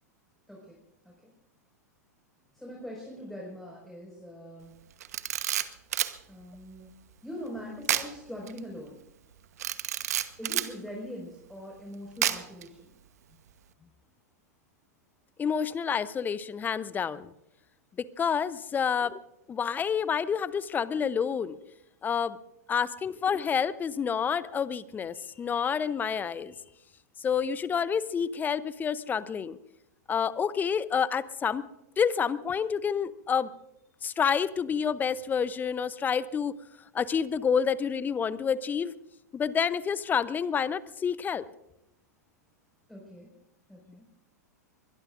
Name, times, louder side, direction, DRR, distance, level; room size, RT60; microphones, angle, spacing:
voice 1, 2.5-4.7 6.3-9.0 10.4-12.9 23.1-23.2 42.9-43.3 43.7-44.1, equal, 5° left, -3 dB, 5.2 m, -42 dB
Camera, 5.0-6.2 7.8-8.1 8.5-8.6 9.6-10.7 12.2-12.6, right 11 dB, 65° right, 1.0 m, -29 dB
voice 2, 15.4-17.3 18.2-19.2 19.5-21.6 22.0-22.4 22.7-26.5 27.2-29.6 30.1-31.7 32.0-33.5 34.0-36.5 36.9-38.9 39.3-41.4, left 7 dB, 20° left, 17 dB, 0.7 m, -28 dB
23.0 x 21.0 x 2.6 m, 0.85 s
figure-of-eight pair, 95°, 9 cm